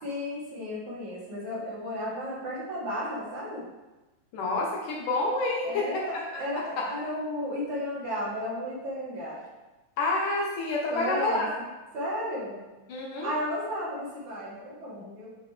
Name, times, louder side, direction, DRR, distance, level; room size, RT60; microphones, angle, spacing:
voice 1, 0.0-3.7 5.6-9.4 10.9-11.5 11.9-12.6 13.2-15.3, equal, 45° right, -8 dB, 3.9 m, -33 dB
voice 2, 4.3-6.4 6.8-6.9 10.0-11.5 12.9-13.4, left 2 dB, 65° left, -2 dB, 2.1 m, -28 dB
11.0 x 6.2 x 3.4 m, 1.1 s
omnidirectional pair, 4.9 m